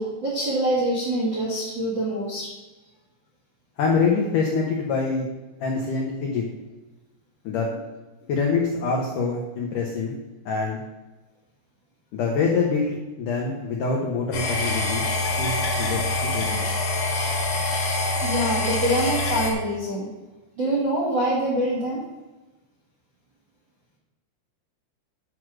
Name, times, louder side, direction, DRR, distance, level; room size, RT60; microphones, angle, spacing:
voice 1, 0.0-2.5 18.2-20.1 20.6-22.0, right 1 dB, 55° right, -5 dB, 1.3 m, -25 dB
voice 2, 3.8-5.3 5.6-6.4 7.4-7.8 8.3-10.2 10.5-10.8 12.1-15.1 15.4-16.7, left 4 dB, 85° left, 0 dB, 1.8 m, -25 dB
sound 1, 14.3-19.5, left 2 dB, 55° left, 1.9 m, -25 dB
9.6 x 4.7 x 6.2 m, 1.2 s
omnidirectional pair, 5.3 m